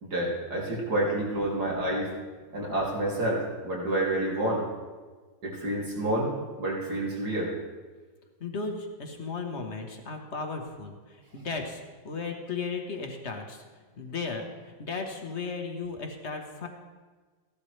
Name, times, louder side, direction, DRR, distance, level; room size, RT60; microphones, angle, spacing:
voice 1, 0.0-2.1 2.5-4.6 5.4-6.3 6.6-7.5, right 1 dB, 55° right, -4 dB, 3.3 m, -28 dB
voice 2, 8.4-13.6 14.0-16.7, left 4 dB, 40° left, 3 dB, 1.3 m, -35 dB
15.5 x 12.0 x 3.3 m, 1.4 s
omnidirectional pair, 2.0 m